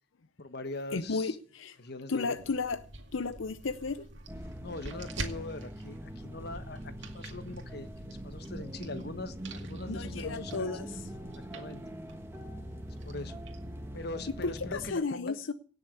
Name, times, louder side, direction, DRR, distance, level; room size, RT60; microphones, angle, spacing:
voice 1, 0.4-1.4 1.8-2.4 4.6-10.8 11.3-12.0 13.0-13.4 13.9-15.4, left 2 dB, 55° left, 1.4 m, -42 dB
voice 2, 0.9-1.8 2.1-2.8 3.1-4.0 9.9-11.0 14.4-15.5, left 4 dB, 85° left, 0.7 m, -33 dB
sound 1, 2.3-14.5, right 2 dB, 65° right, 2.2 m, -47 dB
sound 2, 4.3-14.9, right 1 dB, 15° right, 1.3 m, -42 dB
17.5 x 7.0 x 8.3 m
head